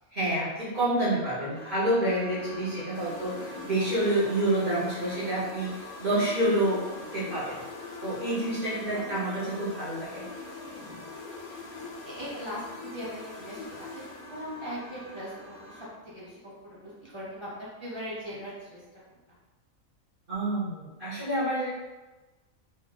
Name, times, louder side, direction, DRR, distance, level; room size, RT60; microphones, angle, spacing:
voice 1, 0.2-6.8 7.1-7.6 8.0-10.2 20.3-21.7, right 1 dB, 40° right, -13 dB, 1.5 m, -28 dB
sound 1, 1.5-15.8, equal, 10° left, 0.8 m, -45 dB
voice 2, 2.7-3.1 8.9-9.6 11.5-18.8, equal, 20° right, -9 dB, 1.3 m, -40 dB
sound 2, 2.9-14.8, left 5 dB, 80° left, 1.0 m, -44 dB
4.1 x 2.2 x 4.0 m, 1.1 s
omnidirectional pair, 1.4 m